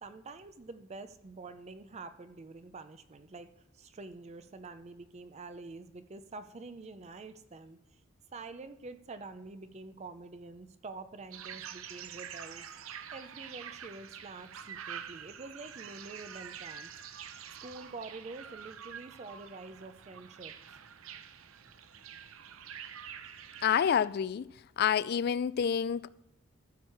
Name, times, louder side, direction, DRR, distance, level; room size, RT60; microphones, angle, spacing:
voice 1, 0.0-8.0 8.3-12.7 13.1-16.9 17.6-20.5, right 3 dB, 35° right, 0.5 m, -47 dB
sound 1, 11.3-24.1, right 8 dB, 90° right, 0.6 m, -46 dB
voice 2, 23.6-24.5 24.8-26.1, left 8 dB, 50° left, 0.3 m, -28 dB
14.0 x 6.2 x 4.7 m
head